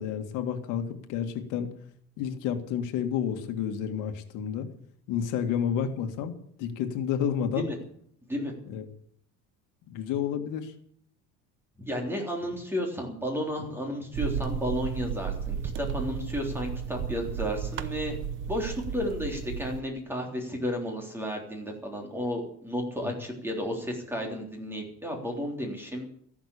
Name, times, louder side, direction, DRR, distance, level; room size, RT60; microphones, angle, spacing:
voice 1, 0.0-1.7 2.2-4.7 5.1-7.7 8.7-8.8 9.9-10.7 23.0-23.2, left 8 dB, 70° left, 6 dB, 2.0 m, -30 dB
voice 2, 11.8-18.2 18.5-26.0, equal, 5° right, 1 dB, 3.5 m, -32 dB
sound 1, 14.1-19.8, right 8 dB, 40° right, 0.9 m, -34 dB
14.0 x 12.0 x 8.6 m, 0.63 s
cardioid pair, 165°, 32 cm